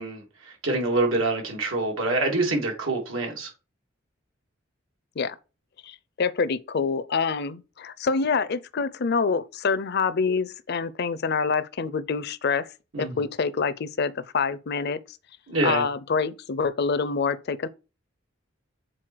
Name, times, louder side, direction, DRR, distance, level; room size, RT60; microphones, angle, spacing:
voice 1, 0.0-3.5 12.9-13.2 15.5-15.8, right 2 dB, 90° right, 2.8 m, -26 dB
voice 2, 5.8-12.7 13.0-15.2 15.6-17.7, left 5 dB, 55° left, 0.6 m, -26 dB
7.6 x 4.2 x 4.6 m
head